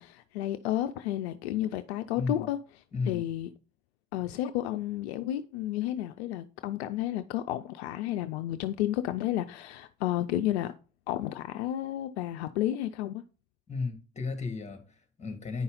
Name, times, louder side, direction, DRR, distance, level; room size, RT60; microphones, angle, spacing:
voice 1, 0.0-2.6 3.1-3.5 4.1-10.7 11.1-13.2, left 13 dB, 65° left, 0.5 m, -31 dB
voice 2, 13.7-15.6, left 4 dB, 20° left, 2.0 m, -34 dB
9.6 x 5.4 x 3.9 m
figure-of-eight pair, 60°, 34 cm